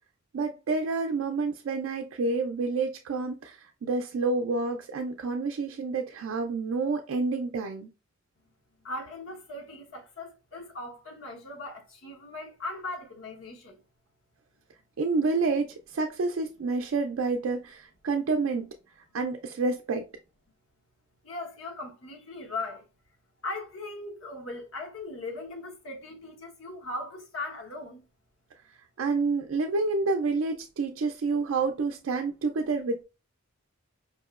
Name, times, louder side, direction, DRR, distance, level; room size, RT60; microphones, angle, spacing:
voice 1, 0.3-7.9 15.0-18.7 19.1-20.1 29.0-33.0, right 3 dB, 75° right, 0.4 m, -28 dB
voice 2, 8.8-13.8 21.2-22.9 23.4-28.0, left 2 dB, 70° left, 1.0 m, -39 dB
4.7 x 2.8 x 2.3 m
head